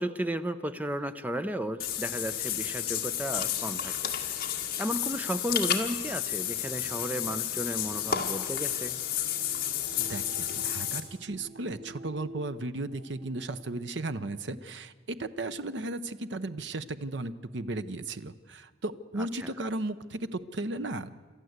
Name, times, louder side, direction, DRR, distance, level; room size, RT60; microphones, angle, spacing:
voice 1, 0.0-3.9 4.2-4.5 4.8-9.0 19.2-19.5, equal, 10° right, 10 dB, 0.6 m, -34 dB
Water / Bathtub (filling or washing), 1.8-11.0, left 10 dB, 50° left, 1.9 m, -31 dB
sound 1, 6.9-13.7, right 2 dB, 40° right, 3.2 m, -50 dB
voice 2, 10.0-21.3, right 2 dB, 65° right, 12 dB, 0.8 m, -35 dB
27.5 x 13.5 x 8.0 m, 1.4 s
head